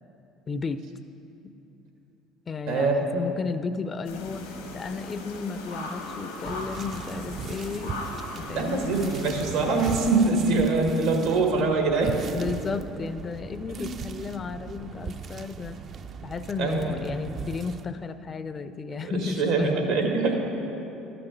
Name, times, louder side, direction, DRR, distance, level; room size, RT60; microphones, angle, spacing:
voice 1, 0.5-0.8 1.4-1.5 2.5-8.0 8.3-8.9 12.3-15.8 16.2-20.2, left 4 dB, 35° left, 12 dB, 0.4 m, -33 dB
voice 2, 2.7-3.1 8.5-12.1 13.8-13.9 16.6-17.0 19.0-20.4, right 3 dB, 80° right, 2 dB, 1.5 m, -24 dB
sound 1, 4.0-9.9, left 2 dB, 90° left, 1.2 m, -38 dB
sound 2, 6.4-17.8, right 6 dB, 45° right, 0.4 m, -39 dB
12.0 x 6.0 x 5.2 m, 3.0 s
hypercardioid pair, 70°, 0 cm